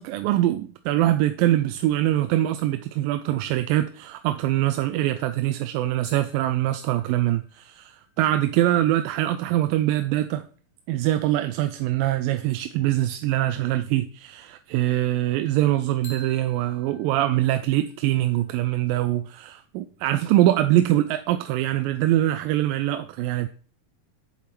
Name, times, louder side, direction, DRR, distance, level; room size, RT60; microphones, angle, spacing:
voice 1, 0.0-7.9 8.2-10.4 10.9-23.5, right 14 dB, 90° right, 2.3 m, -23 dB
sound 1, 6.0-9.6 16.0-18.8, equal, 35° left, 1.0 m, -52 dB
7.4 x 7.4 x 4.5 m
omnidirectional pair, 3.9 m